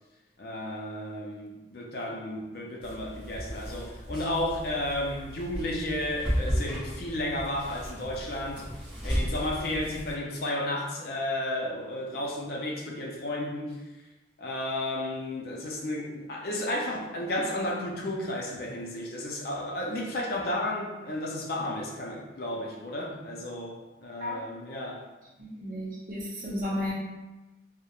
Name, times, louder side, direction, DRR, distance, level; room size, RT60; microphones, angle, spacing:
voice 1, 0.4-8.7 9.0-13.8 14.4-25.0, left 1 dB, 55° left, 0 dB, 0.4 m, -33 dB
sound 1, 2.8-10.1, equal, 5° right, 0.9 m, -34 dB
voice 2, 25.4-26.9, left 1 dB, 50° right, -5 dB, 0.7 m, -33 dB
2.3 x 2.0 x 2.8 m, 1.1 s
head